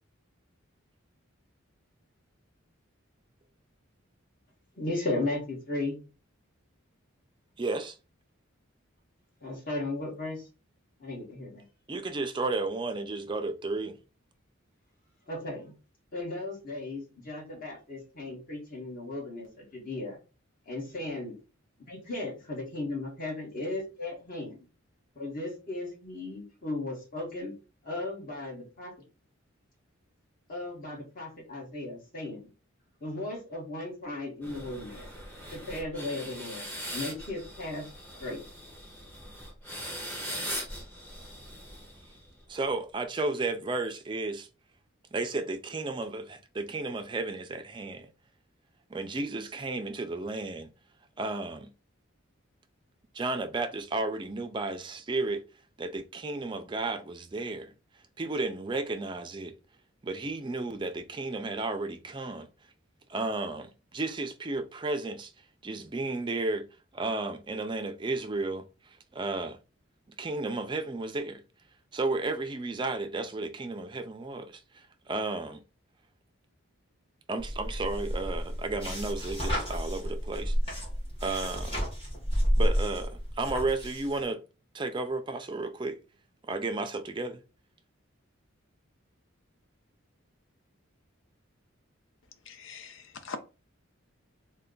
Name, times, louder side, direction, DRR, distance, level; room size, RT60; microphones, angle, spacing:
voice 1, 4.8-6.0 9.4-10.4 11.0-11.6 15.3-15.7 16.1-20.2 20.7-21.3 21.9-24.6 25.2-27.5 27.8-28.9 30.5-32.5 33.0-35.1 35.5-37.8 38.2-38.4, left 2 dB, 40° left, 1.3 m, -36 dB
voice 2, 7.6-8.0 11.9-14.0 42.5-44.5 45.1-48.1 48.9-50.7 51.2-51.7 53.1-55.4 55.8-57.7 58.2-59.5 60.0-62.5 63.1-65.3 65.6-66.7 66.9-69.6 70.2-71.4 71.9-75.6 77.3-80.5 81.2-81.8 82.6-84.4 84.7-86.0 86.5-87.4, right 3 dB, 20° right, 0.3 m, -33 dB
sound 1, 34.4-42.4, equal, 10° left, 0.7 m, -41 dB
sound 2, 77.4-84.2, equal, 25° left, 1.4 m, -31 dB
voice 3, 92.5-93.0 93.2-93.4, left 4 dB, 65° left, 0.5 m, -40 dB
3.2 x 2.2 x 3.8 m
head